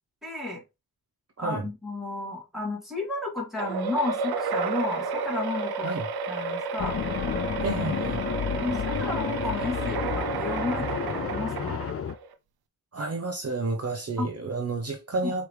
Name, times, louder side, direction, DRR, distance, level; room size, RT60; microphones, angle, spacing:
voice 1, 0.2-0.6 1.4-5.9 6.3-7.0 8.6-11.9 14.2-14.3 15.2-15.3, left 3 dB, ahead, 2.7 m, -32 dB
sound 1, 3.6-12.3, right 4 dB, 90° right, 0.6 m, -31 dB
sound 2, 6.8-12.1, left 8 dB, 40° left, 0.4 m, -31 dB
voice 2, 7.6-8.2 12.9-15.5, right 3 dB, 40° right, 0.9 m, -30 dB
4.6 x 3.2 x 3.2 m
cardioid pair, 50°, 36 cm